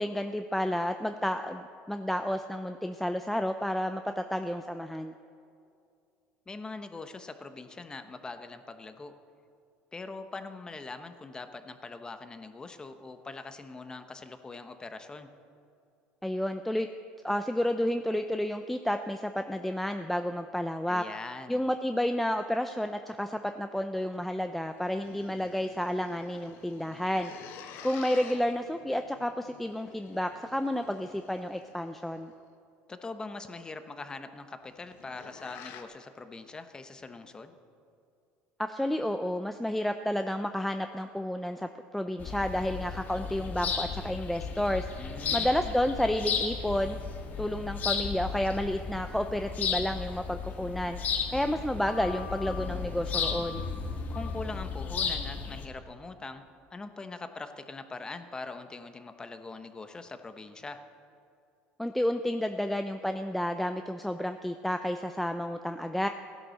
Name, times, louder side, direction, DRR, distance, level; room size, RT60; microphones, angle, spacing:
voice 1, 0.0-5.1 16.2-16.9 17.2-21.0 21.5-27.3 27.8-32.3 38.6-44.9 45.3-47.0 47.4-51.0 51.3-53.7 61.8-66.1, left 1 dB, 5° left, 7 dB, 0.5 m, -31 dB
voice 2, 6.5-9.1 9.9-15.3 20.9-21.6 32.9-37.5 45.0-45.8 54.1-56.4 56.7-60.8, left 3 dB, 20° left, 8 dB, 1.1 m, -42 dB
sound 1, 24.6-32.2 34.6-35.8, left 7 dB, 70° left, 1.3 m, -50 dB
sound 2, 42.2-55.7, left 6 dB, 45° left, 1.6 m, -34 dB
16.5 x 11.0 x 6.6 m, 2.5 s
supercardioid pair, 110°, 4 cm